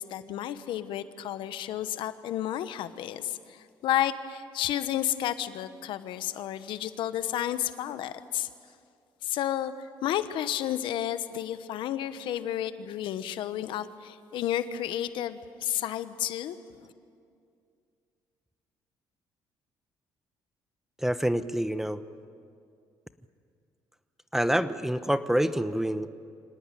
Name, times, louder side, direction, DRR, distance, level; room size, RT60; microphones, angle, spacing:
voice 1, 0.0-8.5 9.2-16.6 16.8-16.9, left 11 dB, 80° left, 12 dB, 1.0 m, -31 dB
voice 2, 21.0-22.0 24.3-26.1, equal, 5° right, 12 dB, 0.9 m, -27 dB
25.0 x 18.5 x 9.2 m, 2.3 s
cardioid pair, 95°, 8 cm